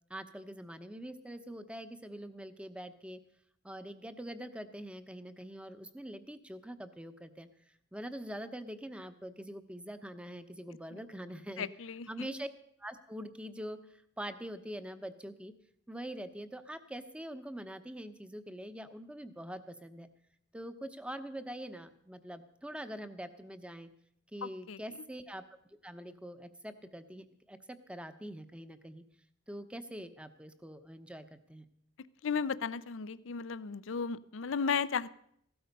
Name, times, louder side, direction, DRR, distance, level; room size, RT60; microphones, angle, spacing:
voice 1, 0.1-3.2 3.6-7.5 7.9-11.7 12.1-12.5 12.8-13.8 14.2-15.5 15.9-20.1 20.5-23.9 24.3-25.4 25.8-29.0 29.5-31.6, equal, 5° right, 11 dB, 0.8 m, -44 dB
voice 2, 11.6-12.3 24.4-24.8 32.2-35.1, left 6 dB, 70° left, 16 dB, 0.6 m, -35 dB
16.0 x 12.5 x 5.3 m, 0.69 s
head